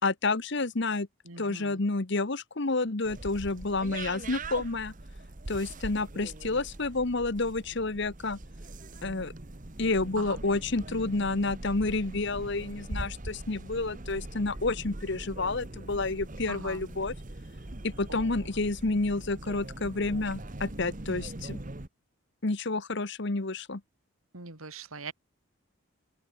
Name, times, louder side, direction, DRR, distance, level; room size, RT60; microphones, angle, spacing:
voice 1, 0.0-1.1 1.4-4.9 5.5-8.4 9.0-9.3 9.8-17.1 17.8-21.6 22.4-23.8, left 3 dB, 55° left, 1.1 m, -30 dB
voice 2, 1.3-1.8 10.2-10.4 16.5-16.9 18.1-18.5 24.3-25.1, right 4 dB, 80° right, 2.6 m, -42 dB
sound 1, 3.0-21.9, right 2 dB, 35° right, 1.3 m, -42 dB
head